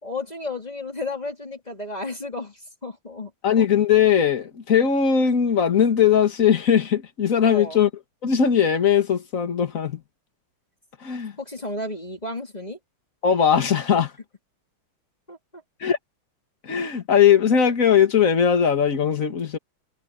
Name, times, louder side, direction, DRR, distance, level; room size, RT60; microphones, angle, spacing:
voice 1, 0.0-3.3 7.5-7.8 11.4-12.8 15.3-15.6, left 2 dB, 20° left, 2.9 m, -33 dB
voice 2, 3.4-7.9 8.2-10.0 11.0-11.4 13.2-14.1 15.8-16.0 16.6-19.6, left 8 dB, 40° left, 2.1 m, -19 dB
omnidirectional pair, 2.4 m